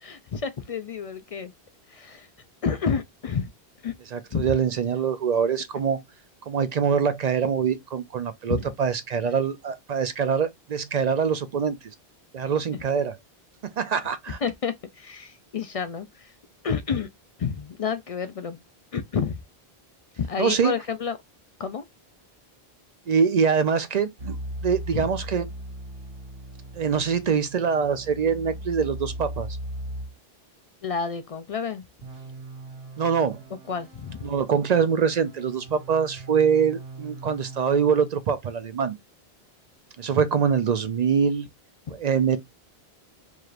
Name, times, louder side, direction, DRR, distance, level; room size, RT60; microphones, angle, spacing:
voice 1, 0.0-1.5 1.9-2.3 2.6-3.5 3.8-3.9 4.3-4.4 8.5-8.7 14.4-16.3 16.6-17.1 17.4-18.6 18.9-19.4 20.2-21.2 21.6-21.8 24.9-25.1 30.8-31.8 33.7-34.2 41.9-42.0, left 6 dB, 55° left, 0.4 m, -29 dB
voice 2, 4.1-6.0 6.5-11.8 12.3-13.1 13.8-14.4 20.4-20.7 23.1-25.4 26.8-29.5 33.0-33.4 34.2-38.9 40.0-41.5 41.9-42.4, right 6 dB, 55° right, 0.5 m, -24 dB
sound 1, 24.2-30.1 32.0-38.1, right 1 dB, 75° right, 2.0 m, -39 dB
4.8 x 3.0 x 2.4 m
omnidirectional pair, 1.1 m